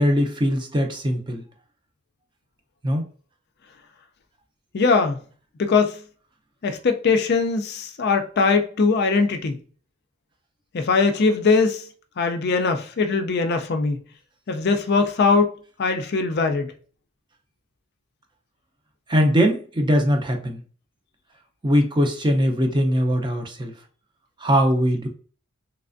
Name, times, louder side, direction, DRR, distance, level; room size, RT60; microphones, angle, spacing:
voice 1, 0.0-1.4 2.8-3.0 19.1-20.6 21.6-23.7 24.4-25.1, equal, 20° right, 0.5 m, -21 dB
voice 2, 4.7-5.2 5.6-6.0 6.6-9.6 10.7-11.9 12.2-14.0 14.5-15.5 15.8-16.7, left 4 dB, 45° left, 0.4 m, -21 dB
3.3 x 3.2 x 2.5 m
head